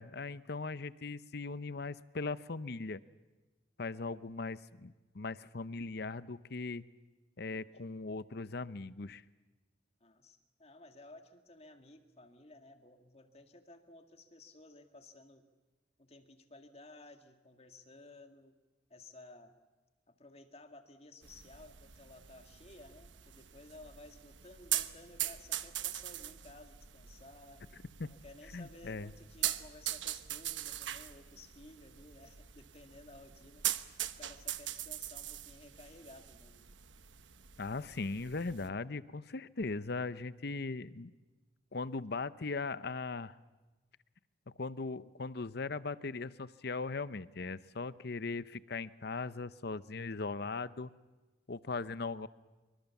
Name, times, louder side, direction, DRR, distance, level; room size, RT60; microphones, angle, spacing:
voice 1, 0.0-3.0 3.8-6.8 7.4-9.2 28.0-28.1 28.5-29.1 37.6-41.1 41.7-43.4 44.5-50.9 51.5-52.3, left 3 dB, 60° left, 15 dB, 0.8 m, -39 dB
voice 2, 7.5-7.8 10.0-15.4 16.0-18.6 18.9-19.6 20.1-27.6 28.1-36.7, left 2 dB, 35° left, 6 dB, 2.1 m, -56 dB
sound 1, 21.2-38.7, right 12 dB, 85° right, 1.1 m, -42 dB
25.0 x 24.5 x 7.2 m, 1.2 s
head